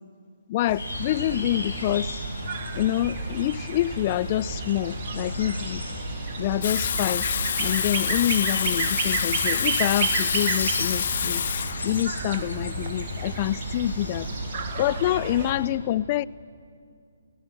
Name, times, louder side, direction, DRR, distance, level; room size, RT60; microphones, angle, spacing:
voice 1, 0.5-2.2 2.7-5.8 6.4-7.3 7.6-11.4 11.8-14.3 14.8-16.3, left 13 dB, 35° left, 18 dB, 0.4 m, -26 dB
sound 1, 0.7-15.5, right 5 dB, 35° right, 1.7 m, -33 dB
Birds in Montreal's Parc de La Visitation, 0.8-15.7, left 2 dB, 80° left, 5.0 m, -35 dB
Water tap faucet / Sink (filling or washing), 6.6-14.3, left 8 dB, 55° left, 0.8 m, -28 dB
29.5 x 17.0 x 6.2 m, 2.3 s
figure-of-eight pair, 145°, 0 cm